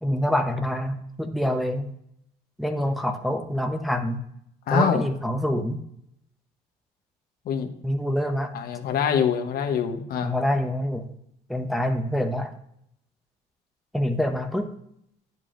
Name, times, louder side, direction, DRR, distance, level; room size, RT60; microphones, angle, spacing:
voice 1, 0.0-1.9 2.6-4.2 4.7-5.8 7.8-8.5 10.2-11.1 11.5-12.5 13.9-14.7, equal, ahead, 4 dB, 0.7 m, -26 dB
voice 2, 4.7-5.0 7.5-7.7 8.5-10.3, left 7 dB, 65° left, 6 dB, 1.0 m, -24 dB
9.5 x 7.4 x 2.5 m, 0.74 s
cardioid pair, 110°, 17 cm